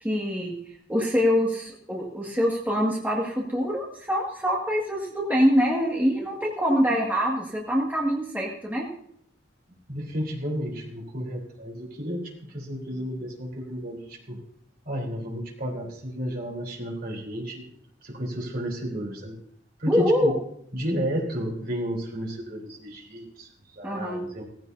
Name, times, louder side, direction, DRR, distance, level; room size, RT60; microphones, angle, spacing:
voice 1, 0.0-0.5 0.9-8.9 19.9-20.3 23.8-24.2, equal, 10° right, -4 dB, 2.1 m, -24 dB
voice 2, 9.9-14.4 14.8-17.7 18.0-19.4 19.8-20.3 20.7-24.4, equal, 50° right, -1 dB, 3.8 m, -32 dB
18.0 x 15.0 x 2.8 m, 0.69 s
head